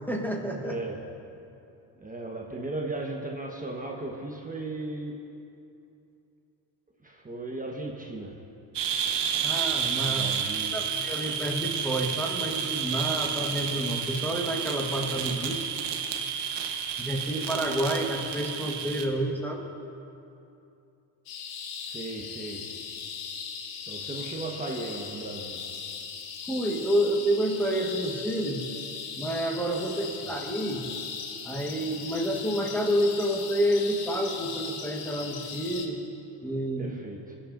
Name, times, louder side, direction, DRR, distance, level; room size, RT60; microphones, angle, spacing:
voice 1, 0.1-0.8 9.4-10.3 10.7-15.6 17.0-19.7 26.5-28.6 29.2-30.9 31.4-36.0 36.4-36.9, right 1 dB, 5° left, -1 dB, 1.3 m, -29 dB
voice 2, 0.6-1.0 1.9-5.2 7.0-8.4 10.1-10.8 21.8-22.7 23.9-25.6 30.0-30.3 36.8-37.3, right 2 dB, 15° right, -1 dB, 1.2 m, -36 dB
sound 1, 8.7-19.0, right 7 dB, 55° right, 1.2 m, -30 dB
sound 2, 21.3-35.9, left 6 dB, 85° left, 1.2 m, -39 dB
19.5 x 8.8 x 2.6 m, 2.7 s
supercardioid pair, 75°, 48 cm